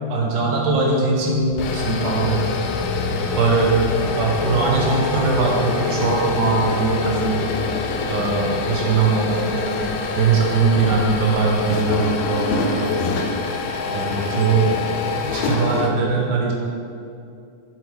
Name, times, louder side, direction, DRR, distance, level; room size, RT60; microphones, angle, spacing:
voice 1, 0.1-2.4 3.4-3.8 4.1-7.4 8.1-9.9 10.1-13.0 13.8-14.8 15.3-16.5, right 4 dB, 85° right, -2 dB, 2.8 m, -21 dB
sound 1, 1.4-15.9, left 4 dB, 75° left, 1.6 m, -25 dB
9.7 x 7.7 x 3.6 m, 2.5 s
omnidirectional pair, 3.6 m